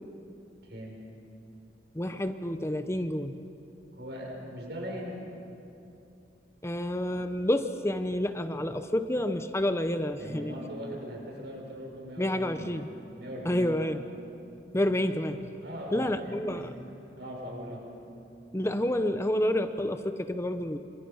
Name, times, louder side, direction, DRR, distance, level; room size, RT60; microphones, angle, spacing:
voice 1, 0.6-0.9 3.9-5.1 10.2-12.8 13.2-13.9 15.6-16.9 17.2-17.8, equal, 70° right, -1 dB, 6.5 m, -40 dB
voice 2, 1.9-3.4 6.6-10.6 12.2-12.9 13.4-14.0 14.7-15.5 15.9-16.7 18.5-20.8, left 1 dB, 15° left, 9 dB, 0.8 m, -29 dB
28.5 x 25.5 x 5.6 m, 2.7 s
head